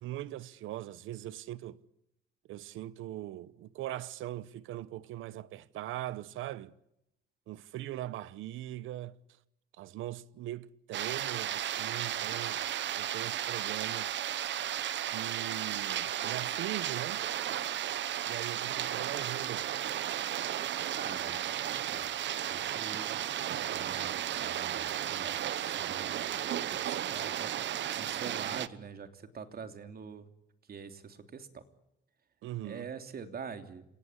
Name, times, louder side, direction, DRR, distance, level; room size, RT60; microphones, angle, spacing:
voice 1, 0.0-1.8 2.5-6.7 7.5-9.2 9.8-12.7 12.9-14.1 15.1-17.2 18.2-19.7 32.4-32.9, right 14 dB, 90° right, 1.0 m, -40 dB
sound 1, 10.9-28.7, right 11 dB, 65° right, 1.0 m, -34 dB
voice 2, 21.0-21.4 21.7-22.1 22.5-23.1 23.5-30.3 30.7-31.6 32.6-33.8, right 6 dB, 50° right, 3.2 m, -45 dB
30.0 x 18.5 x 9.9 m
cardioid pair, 90°, 20 cm